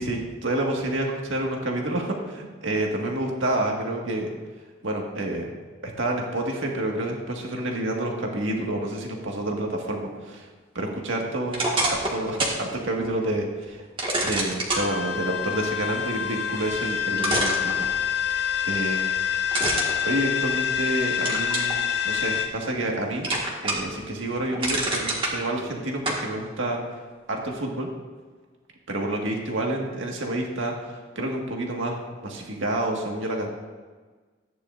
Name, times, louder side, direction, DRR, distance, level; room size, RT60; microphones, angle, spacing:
voice 1, 0.0-4.3 4.8-5.5 5.8-10.5 10.7-11.6 11.9-13.8 14.2-18.1 18.6-19.0 20.0-23.3 23.6-26.8 27.3-27.9 28.9-33.5, right 1 dB, 80° right, 0 dB, 1.7 m, -29 dB
sound 1, 11.5-12.6 13.0-13.1 14.0-14.9 16.7-16.8 17.2-18.3 19.5-20.8 21.2-21.8 22.3-23.0 23.2-24.0 24.3-25.3 26.1-26.2, right 2 dB, 25° right, 1.7 m, -26 dB
sound 2, 14.7-22.5, left 8 dB, 55° left, 1.3 m, -27 dB
14.0 x 9.7 x 2.5 m, 1.4 s
head